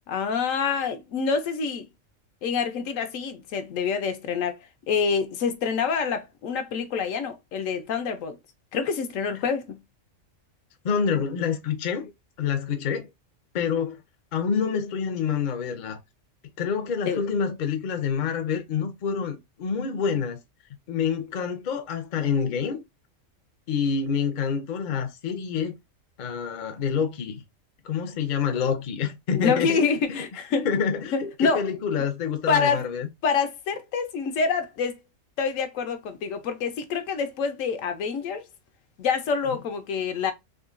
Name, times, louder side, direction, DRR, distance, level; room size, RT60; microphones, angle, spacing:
voice 1, 0.1-1.9 2.4-4.6 4.9-8.4 8.7-9.8 17.1-17.2 29.3-30.7 31.1-31.7 32.0-32.1 32.5-32.9 33.2-35.0 35.4-38.4 39.0-40.3, left 5 dB, 80° left, 1.0 m, -26 dB
voice 2, 10.8-12.1 12.4-13.1 13.5-14.0 14.3-16.0 16.4-20.4 20.9-22.8 23.7-25.7 26.2-27.4 27.8-29.8 30.1-30.3 30.5-33.1, left 6 dB, 55° left, 0.5 m, -27 dB
3.7 x 2.1 x 2.4 m
omnidirectional pair, 1.4 m